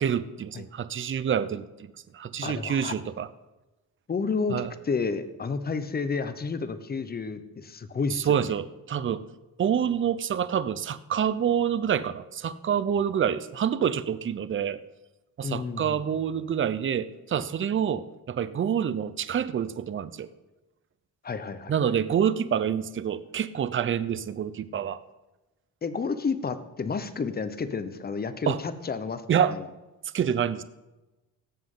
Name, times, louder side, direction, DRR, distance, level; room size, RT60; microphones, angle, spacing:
voice 1, 0.0-3.3 4.5-4.7 8.2-9.2 9.6-14.8 15.4-20.3 21.7-25.0 28.5-28.6 29.3-29.5 30.1-30.6, right 8 dB, 35° right, 14 dB, 0.6 m, -27 dB
voice 2, 2.4-2.9 4.1-8.5 15.4-16.0 21.2-22.0 25.8-29.7, left 5 dB, 30° left, 11 dB, 0.9 m, -31 dB
17.5 x 7.4 x 3.8 m, 1.1 s
cardioid pair, 100°, 33 cm